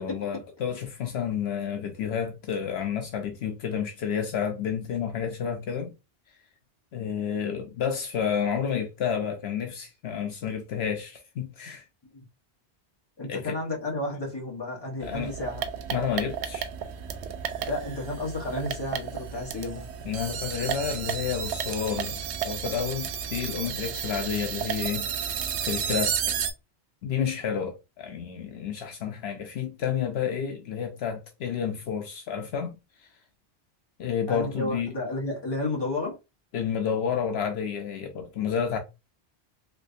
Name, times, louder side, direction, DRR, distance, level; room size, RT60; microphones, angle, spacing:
voice 1, 0.0-5.9 6.9-11.8 13.3-13.6 15.0-15.3 15.9-16.7 20.0-26.3 27.0-32.8 34.0-34.9 36.5-38.8, left 7 dB, 75° left, 0.8 m, -30 dB
voice 2, 13.2-15.6 17.7-19.9 34.3-36.2, left 2 dB, 25° left, 1.2 m, -32 dB
sound 1, 15.0-26.5, right 8 dB, 85° right, 0.9 m, -32 dB
3.3 x 3.1 x 2.6 m
omnidirectional pair, 1.1 m